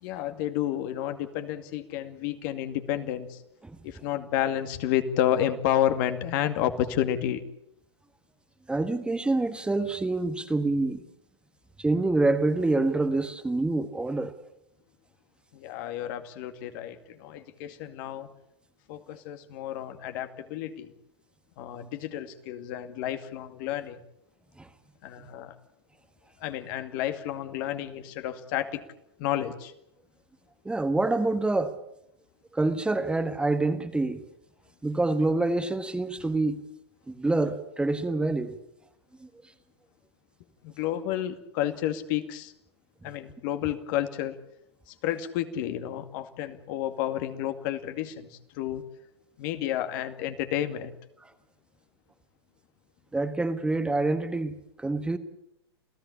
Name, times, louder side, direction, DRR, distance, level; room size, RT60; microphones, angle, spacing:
voice 1, 0.0-3.4 3.8-7.4 15.5-18.3 18.9-20.9 21.6-24.0 25.0-25.5 26.4-28.8 29.2-29.7 40.6-42.5 43.0-44.4 44.9-48.8 49.4-50.9, left 11 dB, 50° left, 2.4 m, -30 dB
voice 2, 8.7-11.0 11.8-14.3 24.6-24.7 30.6-31.8 32.5-34.2 34.8-36.6 37.1-38.6 39.2-39.3 53.1-55.2, right 2 dB, 5° right, 1.6 m, -26 dB
28.5 x 16.0 x 8.6 m
hypercardioid pair, 115°, 14 cm